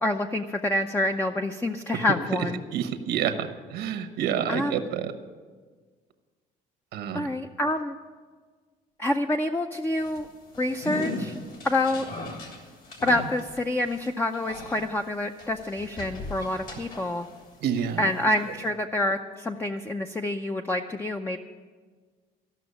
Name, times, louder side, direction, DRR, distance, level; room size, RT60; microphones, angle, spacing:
voice 1, 0.0-2.6 4.5-4.8 7.1-8.0 9.0-10.3 10.6-11.3 11.6-12.1 13.0-17.3 18.0-21.4, left 1 dB, 10° left, 5 dB, 0.5 m, -27 dB
voice 2, 2.7-3.5 3.7-5.1 6.9-7.3 17.6-18.0, right 8 dB, 80° right, 9 dB, 1.1 m, -28 dB
sound 1, 9.9-17.5 17.8-18.7, left 2 dB, 55° left, 3.0 m, -38 dB
14.0 x 6.1 x 9.7 m, 1.5 s
cardioid pair, 110°, 17 cm